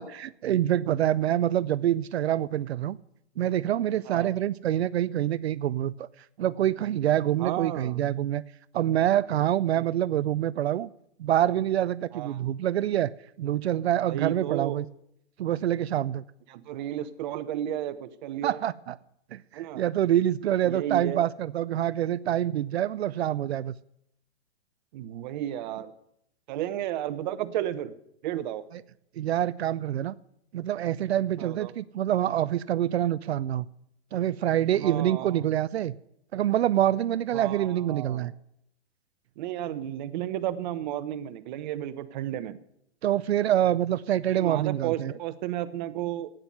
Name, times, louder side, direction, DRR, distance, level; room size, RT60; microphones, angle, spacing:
voice 1, 0.0-3.0 3.4-6.1 6.4-8.4 8.7-10.9 11.2-13.1 13.4-14.9 15.4-16.2 18.4-19.0 19.3-23.7 29.2-30.2 30.5-33.7 34.1-35.9 36.3-38.3 43.0-45.1, right 11 dB, 70° right, 17 dB, 0.6 m, -26 dB
voice 2, 7.4-8.0 9.8-9.9 12.1-12.4 14.1-14.8 16.5-18.6 19.5-19.8 20.6-21.2 24.9-25.9 26.5-27.9 28.2-28.6 31.4-31.7 34.8-35.5 37.3-38.3 39.4-42.6 44.3-46.3, right 12 dB, 45° right, 12 dB, 1.1 m, -33 dB
12.0 x 9.1 x 9.3 m, 0.75 s
hypercardioid pair, 135°, 33 cm